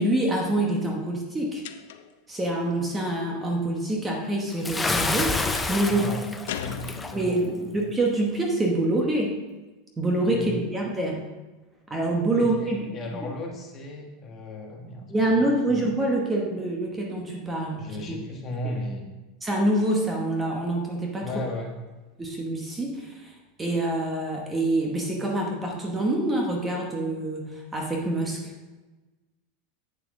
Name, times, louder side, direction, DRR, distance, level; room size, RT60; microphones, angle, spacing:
voice 1, 0.0-1.6 2.3-6.1 7.1-9.3 10.0-11.2 11.9-13.3 15.1-17.8 18.1-18.2 19.4-21.3 22.2-23.3 23.6-27.5 27.7-28.4, right 1 dB, 10° right, 0 dB, 1.0 m, -26 dB
sound 1, 1.6-2.2 5.6-5.9 6.5-7.6, left 9 dB, 75° left, 0.5 m, -37 dB
Bathtub (filling or washing) / Splash splatter, 4.6-7.1, left 3 dB, 10° left, 0.4 m, -28 dB
voice 2, 5.9-6.8 7.1-7.7 10.3-10.5 12.3-15.1 15.7-15.8 17.8-19.1 21.2-21.7, left 1 dB, 25° left, 1 dB, 1.2 m, -35 dB
8.5 x 7.2 x 3.6 m, 1.2 s
supercardioid pair, 165°, 0 cm